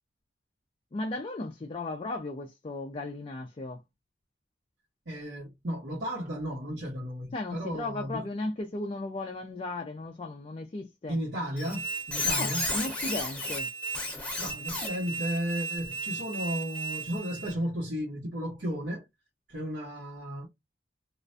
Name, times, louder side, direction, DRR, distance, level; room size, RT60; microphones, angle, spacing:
voice 1, 0.9-3.8 7.3-11.2 12.4-13.7, left 2 dB, 30° left, 0.4 m, -36 dB
voice 2, 5.1-8.2 11.1-12.6 14.4-19.0 19.5-20.5, equal, 85° right, 1.0 m, -34 dB
Squeak, 11.6-17.5, equal, 10° left, 0.8 m, -33 dB
2.4 x 2.1 x 2.4 m
head